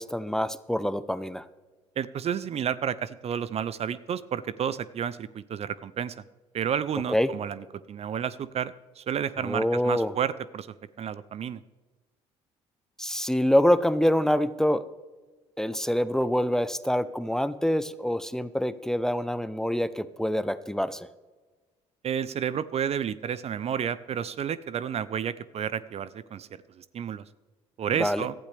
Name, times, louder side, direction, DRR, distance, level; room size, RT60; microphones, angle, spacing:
voice 1, 0.0-1.4 7.1-7.3 9.4-10.1 13.0-14.8 15.6-21.1 28.0-28.3, equal, 5° left, 14 dB, 0.7 m, -25 dB
voice 2, 2.0-6.2 6.5-11.6 22.0-26.5 26.8-27.3 27.8-28.3, right 8 dB, 45° right, 17 dB, 0.5 m, -31 dB
18.0 x 12.0 x 3.4 m, 1.3 s
hypercardioid pair, 65°, 14 cm